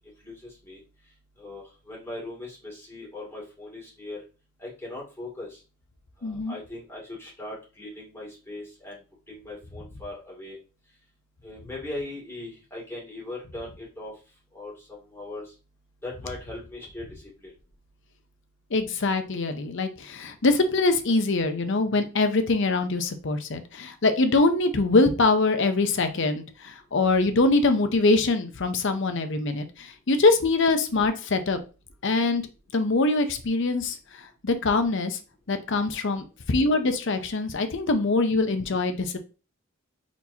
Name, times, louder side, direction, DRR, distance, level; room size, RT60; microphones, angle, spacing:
voice 1, 0.2-0.8 1.4-4.2 4.6-5.6 6.2-9.0 9.3-10.6 11.4-14.1 14.5-15.4 16.0-17.5, left 2 dB, 10° left, -5 dB, 2.6 m, -39 dB
voice 2, 6.2-6.6 18.7-31.6 32.0-32.4 32.7-35.2 35.5-39.2, left 3 dB, 60° left, 8 dB, 0.7 m, -23 dB
4.4 x 4.2 x 2.8 m, 0.33 s
head